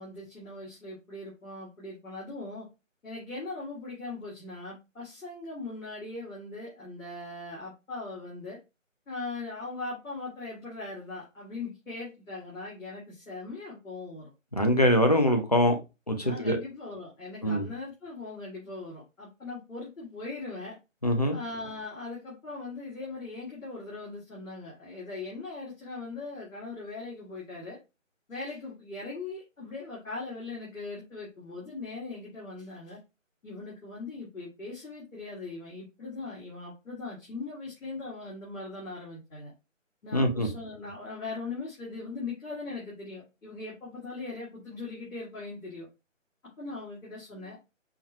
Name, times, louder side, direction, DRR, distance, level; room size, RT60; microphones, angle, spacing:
voice 1, 0.0-2.7 3.0-8.6 9.1-14.3 16.2-20.8 21.3-27.8 28.3-33.0 33.4-39.5 40.0-45.9 46.6-47.6, left 3 dB, 85° left, 2.2 m, -40 dB
voice 2, 14.5-15.8 16.1-16.2 16.4-16.6 17.4-17.7 21.0-21.4 40.1-40.5, equal, 30° left, 0.5 m, -23 dB
5.6 x 2.2 x 2.9 m
figure-of-eight pair, 170°, 39 cm